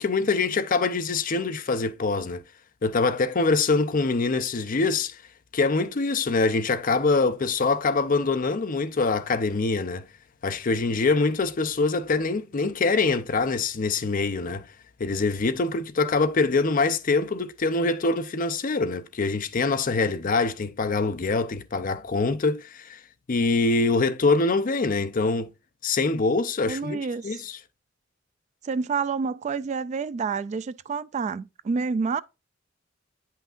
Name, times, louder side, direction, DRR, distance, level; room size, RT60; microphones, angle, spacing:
voice 1, 0.0-2.4 2.8-5.2 5.5-10.0 10.4-14.6 15.0-23.0 23.3-25.5 25.8-27.0 27.2-27.6, left 3 dB, 45° left, 0.5 m, -24 dB
voice 2, 26.7-27.4 28.6-32.2, right 5 dB, 35° right, 0.3 m, -28 dB
9.0 x 5.7 x 2.4 m
head